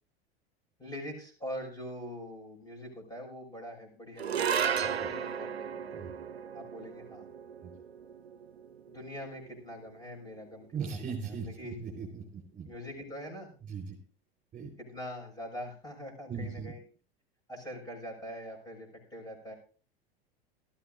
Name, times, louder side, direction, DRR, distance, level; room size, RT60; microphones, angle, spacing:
voice 1, 0.8-6.0 6.5-7.3 8.9-11.0 11.2-11.8 12.6-13.5 14.8-16.8 17.5-19.5, equal, 10° left, 1 dB, 6.4 m, -43 dB
sound 1, 4.2-10.7, right 7 dB, 85° right, 0.6 m, -35 dB
voice 2, 10.7-12.7 13.7-14.0 14.5-14.7 16.3-16.7, right 6 dB, 25° right, 1 dB, 4.2 m, -38 dB
18.5 x 13.5 x 2.6 m, 0.39 s
figure-of-eight pair, 85°, 31 cm